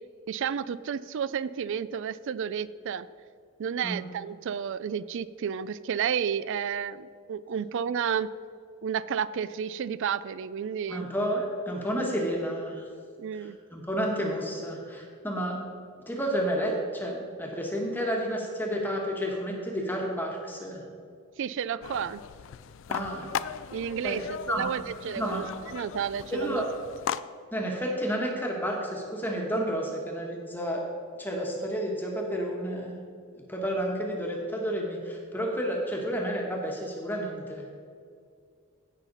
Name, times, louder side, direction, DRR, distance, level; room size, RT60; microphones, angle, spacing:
voice 1, 0.3-3.1 3.6-8.3 8.8-11.1 13.2-13.6 21.4-22.2 23.7-26.6, right 7 dB, 60° right, 17 dB, 0.3 m, -31 dB
voice 2, 10.9-12.9 13.4-15.6 16.1-20.8 22.9-23.3 24.0-24.2 24.5-24.7 25.2-25.4 26.3-26.7 27.5-30.9 31.2-32.9 33.5-37.7, equal, 10° left, -1 dB, 1.2 m, -31 dB
sound 1, 21.8-27.2, left 8 dB, 60° left, 0.3 m, -38 dB
16.0 x 5.8 x 4.0 m, 2.3 s
head